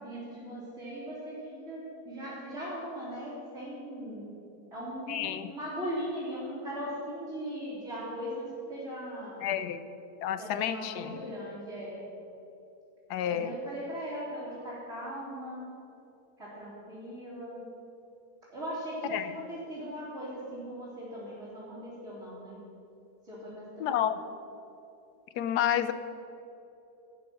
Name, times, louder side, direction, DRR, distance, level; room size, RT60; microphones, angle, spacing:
voice 1, 0.0-4.3 4.7-9.4 10.4-12.0 13.3-15.7 16.4-17.6 18.5-22.6 23.2-23.9, equal, 45° right, -12 dB, 3.5 m, -39 dB
voice 2, 5.1-5.5 9.4-9.8 10.2-11.2 13.1-13.5 19.0-19.3 23.8-24.2 25.3-25.9, left 10 dB, 90° left, 11 dB, 1.2 m, -30 dB
12.0 x 9.3 x 5.7 m, 3.0 s
omnidirectional pair, 1.7 m